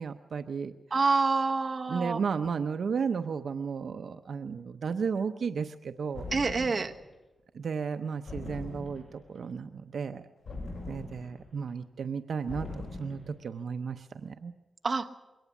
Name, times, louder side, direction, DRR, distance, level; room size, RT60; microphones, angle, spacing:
voice 1, 0.0-1.1 1.9-6.2 7.5-10.2 10.9-14.5, right 6 dB, 65° right, 7 dB, 0.6 m, -34 dB
voice 2, 0.9-2.2 6.3-6.9 14.8-15.1, right 4 dB, 35° right, 4 dB, 1.0 m, -27 dB
sound 1, 6.1-7.0 8.3-9.2 10.5-11.5 12.5-13.3, left 2 dB, 70° left, 7.9 m, -41 dB
22.5 x 18.0 x 7.1 m, 1.1 s
wide cardioid pair, 145°, 0 cm